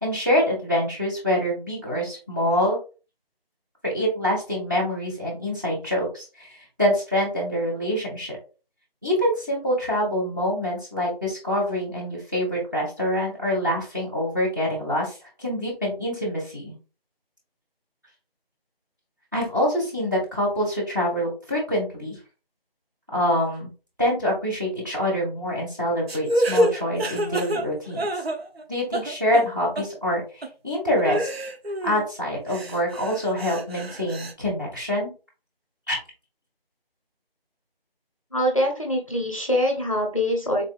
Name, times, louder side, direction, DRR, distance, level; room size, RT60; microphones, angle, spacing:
voice 1, 0.0-2.8 3.8-8.4 9.0-16.7 19.3-22.2 23.1-23.7 24.0-28.1 28.7-31.3 31.8-35.1 35.9-36.0, equal, 20° right, -3 dB, 1.0 m, -25 dB
sound 1, 26.1-28.6 28.9-29.5 29.8-29.9 30.4-30.5 31.0-32.0 32.5-34.3, equal, 85° right, 0.8 m, -27 dB
voice 2, 38.3-40.6, equal, 35° left, 0 dB, 0.6 m, -24 dB
3.7 x 3.1 x 2.3 m, 0.34 s
figure-of-eight pair, 175°, 30 cm